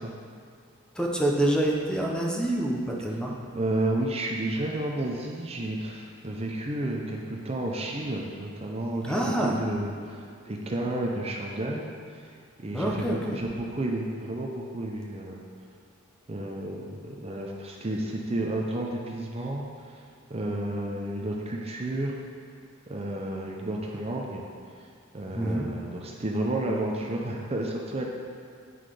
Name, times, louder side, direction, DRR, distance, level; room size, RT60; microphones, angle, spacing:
voice 1, 0.9-3.3 9.0-9.6 12.7-13.4 25.3-25.7, right 1 dB, 5° left, -2 dB, 0.7 m, -26 dB
voice 2, 3.5-11.8 12.2-12.3 12.6-15.4 16.3-20.0 20.3-22.2 22.9-24.4 25.1-28.1, right 1 dB, 30° right, -1 dB, 0.6 m, -31 dB
9.3 x 4.0 x 4.9 m, 2.3 s
head